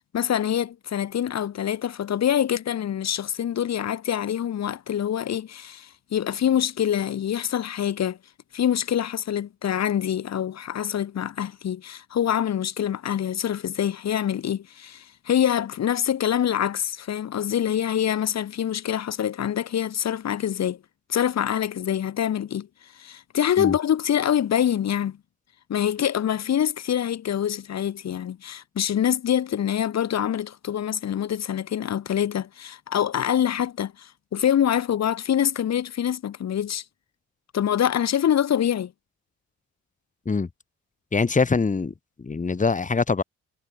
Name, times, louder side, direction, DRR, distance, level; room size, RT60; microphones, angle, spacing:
voice 1, 0.0-8.2 8.5-20.8 21.1-22.7 22.9-25.2 25.7-36.8 37.5-38.9, left 10 dB, 60° left, 2.9 m, -25 dB
voice 2, 41.1-43.2, left 4 dB, 25° left, 2.6 m, -23 dB
cardioid pair, 90°, 30 cm